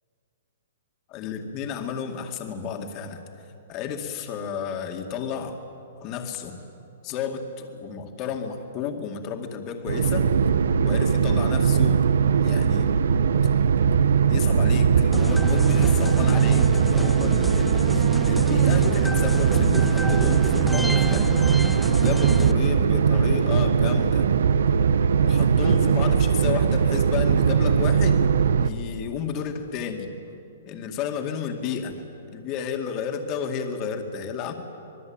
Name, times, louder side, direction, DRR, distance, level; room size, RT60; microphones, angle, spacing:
voice 1, 1.1-3.2 3.7-5.6 6.0-6.6 7.0-10.3 10.8-12.0 12.4-13.0 14.3-21.3 21.9-24.3 25.2-28.3 28.6-30.1 30.7-34.5, left 6 dB, 30° left, 4 dB, 2.2 m, -32 dB
sound 1, 9.9-28.7, right 7 dB, 85° right, 0.9 m, -20 dB
sound 2, 15.1-22.5, left 1 dB, ahead, 0.6 m, -30 dB
26.0 x 20.5 x 8.9 m, 2.7 s
hypercardioid pair, 165°, 0 cm